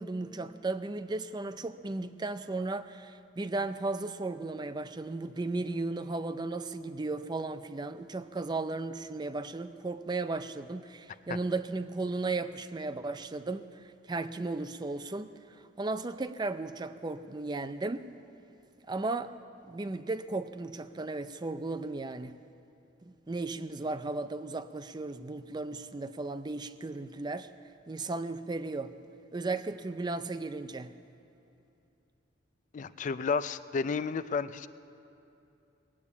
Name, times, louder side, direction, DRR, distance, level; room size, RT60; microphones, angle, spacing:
voice 1, 0.0-13.7 14.1-15.3 15.8-18.1 18.9-19.3 19.7-22.4 23.0-27.5 27.9-28.9 29.3-30.9, right 3 dB, 20° right, 11 dB, 0.4 m, -35 dB
voice 2, 32.7-34.7, left 5 dB, 40° left, 14 dB, 0.3 m, -32 dB
20.0 x 8.5 x 8.4 m, 2.7 s
head